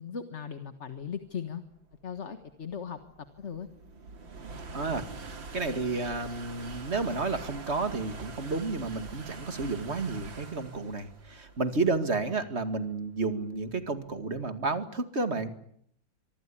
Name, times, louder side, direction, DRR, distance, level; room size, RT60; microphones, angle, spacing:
voice 1, 0.0-1.6 2.0-3.0 3.4-3.7, left 7 dB, 40° left, 9 dB, 1.6 m, -38 dB
sound 1, 1.3-14.7, right 3 dB, 80° right, 3.4 m, -45 dB
voice 2, 4.7-5.1 5.5-15.5, right 3 dB, 35° right, 9 dB, 2.4 m, -31 dB
25.0 x 25.0 x 8.6 m, 0.68 s
omnidirectional pair, 2.1 m